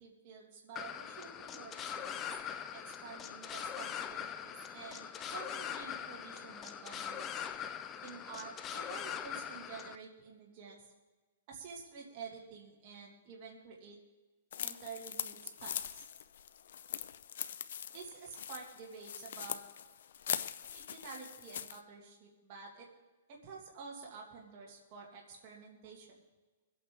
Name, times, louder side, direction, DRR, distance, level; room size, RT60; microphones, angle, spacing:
voice 1, 0.0-2.4 2.7-7.5 8.0-10.8 11.5-14.0 14.6-15.8 17.9-19.6 20.6-22.9 23.3-26.2, right 5 dB, 35° right, -3 dB, 2.3 m, -50 dB
sound 1, 0.8-10.0, left 8 dB, 20° left, 0.5 m, -42 dB
sound 2, 14.5-21.8, left 9 dB, 65° left, 0.6 m, -42 dB
23.5 x 8.6 x 3.7 m, 1.2 s
hypercardioid pair, 165°, 0 cm